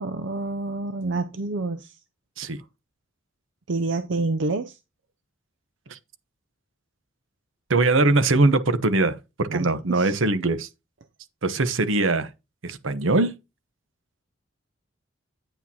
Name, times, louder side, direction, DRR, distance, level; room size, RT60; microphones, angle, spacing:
voice 1, 0.0-2.0 3.7-4.8 9.5-10.2, right 3 dB, 65° right, 0.5 m, -28 dB
voice 2, 7.7-10.7 11.4-12.3 12.6-13.3, right 2 dB, 80° right, 0.9 m, -21 dB
9.0 x 8.3 x 2.8 m
head